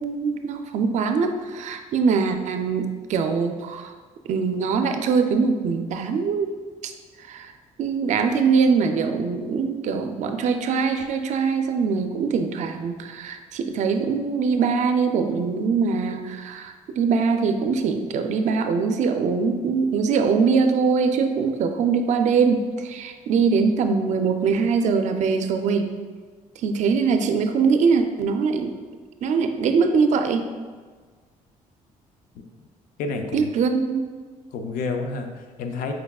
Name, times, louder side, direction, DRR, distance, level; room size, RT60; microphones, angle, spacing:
voice 1, 0.0-3.9 4.3-6.5 6.8-6.9 7.3-7.5 7.8-25.9 26.6-28.7 29.2-30.5 33.3-34.0, right 5 dB, 60° right, 6 dB, 0.4 m, -22 dB
voice 2, 33.0-33.5 34.5-35.9, left 4 dB, 80° left, 5 dB, 0.5 m, -29 dB
4.8 x 3.5 x 2.3 m, 1.5 s
cardioid pair, 110°, 14 cm